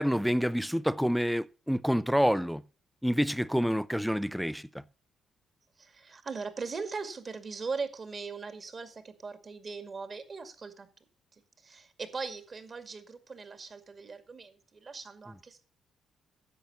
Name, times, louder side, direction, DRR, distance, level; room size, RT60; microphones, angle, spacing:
voice 1, 0.0-2.6 3.0-4.8, equal, ahead, 0.5 m, -28 dB
voice 2, 5.8-10.9 11.6-15.6, right 4 dB, 40° right, 2.2 m, -40 dB
10.5 x 7.7 x 6.8 m
cardioid pair, 90°, 0 cm